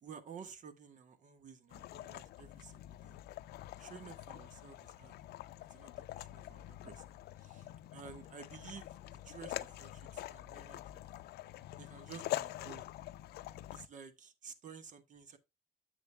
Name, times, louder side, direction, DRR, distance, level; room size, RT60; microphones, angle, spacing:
voice 1, 0.0-3.2 3.8-5.1 5.7-9.0 9.2-11.0 11.8-12.8 13.7-15.4, right 6 dB, 50° right, 1.5 m, -53 dB
sound 1, 1.7-13.9, left 15 dB, 75° left, 0.6 m, -45 dB
10.5 x 7.3 x 2.3 m
cardioid pair, 110°, 17 cm